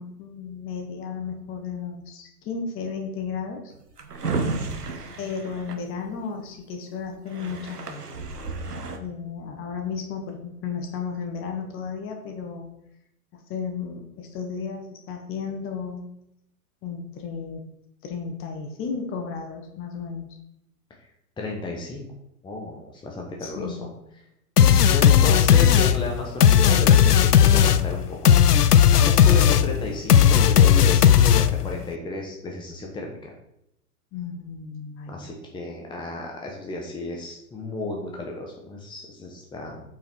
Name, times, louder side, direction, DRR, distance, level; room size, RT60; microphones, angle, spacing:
voice 1, 0.0-3.7 5.2-8.0 9.0-12.7 13.3-16.0 16.8-17.6 18.0-20.3 23.4-24.0 24.6-25.0 34.1-35.3, left 6 dB, 25° left, 4 dB, 1.6 m, -34 dB
Drawer open or close, 3.7-6.5 7.0-7.1 7.3-9.0, right 3 dB, 80° right, 1.3 m, -32 dB
voice 2, 21.4-22.1 22.4-23.9 24.9-28.4 28.9-33.2 35.1-39.8, left 2 dB, 10° left, 0 dB, 1.3 m, -33 dB
sound 1, 24.6-31.8, left 9 dB, 80° left, 0.6 m, -16 dB
8.5 x 5.6 x 4.5 m, 0.80 s
figure-of-eight pair, 105°, 46 cm